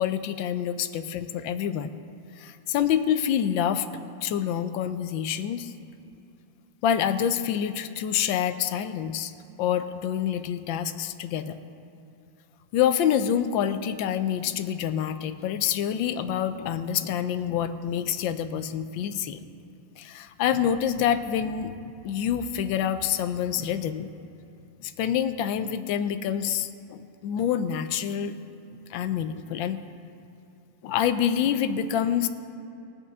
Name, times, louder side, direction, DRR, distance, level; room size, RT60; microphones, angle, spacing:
voice 1, 0.0-1.9 2.4-3.9 4.2-5.7 6.8-9.3 9.6-11.6 12.7-19.4 20.0-24.1 24.8-28.3 28.9-29.8 30.8-32.3, left 9 dB, 85° left, 11 dB, 1.3 m, -27 dB
21.0 x 8.2 x 3.6 m, 2.8 s
omnidirectional pair, 2.0 m